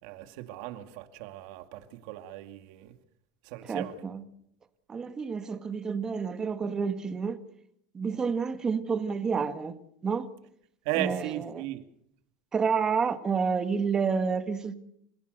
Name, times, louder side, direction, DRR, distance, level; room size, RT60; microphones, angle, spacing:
voice 1, 0.0-2.9 3.4-4.0 10.8-11.8, right 14 dB, 65° right, 2.5 m, -36 dB
voice 2, 3.6-4.2 4.9-7.4 7.9-9.8 10.0-10.3 10.9-11.6 12.5-14.8, right 5 dB, 20° right, 1.8 m, -29 dB
30.0 x 16.5 x 6.8 m
supercardioid pair, 150°, 3 cm